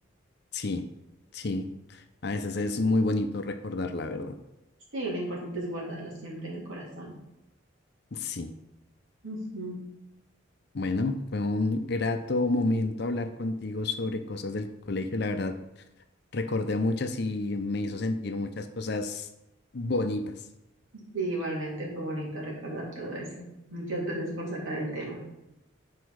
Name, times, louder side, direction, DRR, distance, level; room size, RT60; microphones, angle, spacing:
voice 1, 1.3-4.3 8.1-8.5 10.7-15.5 16.3-19.3 19.7-20.3, left 2 dB, 55° left, 8 dB, 0.6 m, -29 dB
voice 2, 4.9-7.2 9.2-9.8 20.9-25.2, right 1 dB, 75° right, -4 dB, 2.6 m, -34 dB
8.2 x 4.6 x 4.7 m, 0.93 s
head